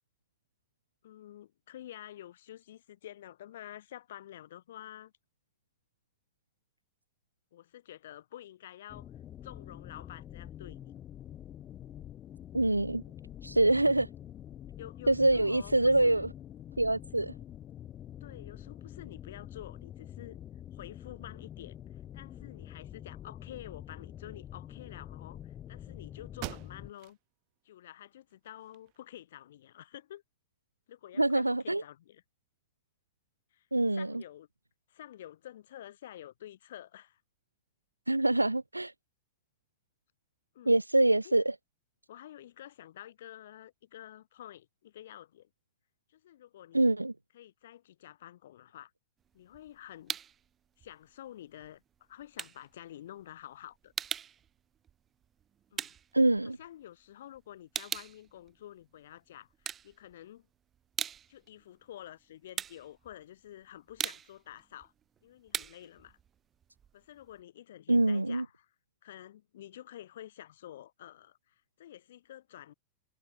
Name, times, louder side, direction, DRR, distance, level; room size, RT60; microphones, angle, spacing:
voice 1, 1.0-5.1 7.5-9.1 9.4-10.9 13.8-14.0 14.8-16.2 18.2-20.4 20.7-21.8 22.1-27.2 27.6-30.2 30.9-32.2 33.5-34.5 34.9-37.2 40.5-40.7 41.2-41.3 42.1-45.5 46.1-47.0 47.3-48.9 49.3-50.2 50.8-51.8 52.1-53.9 55.7-55.9 56.4-60.5 61.3-64.9 65.2-66.2 66.9-68.7 69.0-72.7, left 12 dB, 60° left, 5.6 m, -49 dB
sound 1, 8.9-26.9, left 11 dB, 30° left, 2.1 m, -46 dB
voice 2, 12.5-13.0 13.4-14.1 15.1-16.3 16.8-17.3 31.2-31.8 33.7-34.2 38.1-38.9 40.7-41.6 46.7-47.1 56.1-56.6 67.9-68.5, right 2 dB, 85° right, 0.4 m, -25 dB
sound 2, 25.8-25.9 26.3-27.2 27.7-27.8 28.3-29.2, right 40 dB or more, 45° right, 1.4 m, -44 dB
sound 3, 49.2-50.5 50.8-57.0 57.3-59.1 59.5-60.4 60.7-67.4, right 9 dB, 25° right, 1.1 m, -41 dB
figure-of-eight pair, 90°, 0 cm